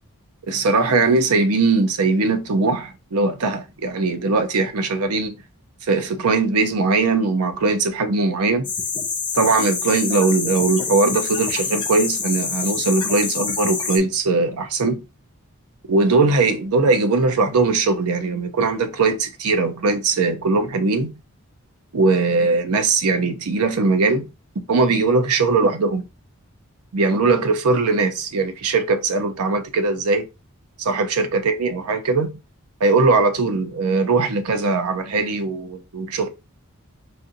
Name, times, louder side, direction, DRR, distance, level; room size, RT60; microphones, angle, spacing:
voice 1, 0.5-5.4 5.8-8.7 9.3-15.0 15.9-21.2 21.9-24.3 24.7-26.0 26.9-30.3 30.8-32.4 32.8-36.3, right 3 dB, 85° right, 0.6 m, -20 dB
sound 1, 8.6-14.0, left 5 dB, 20° left, 0.5 m, -26 dB
4.1 x 2.5 x 2.6 m
head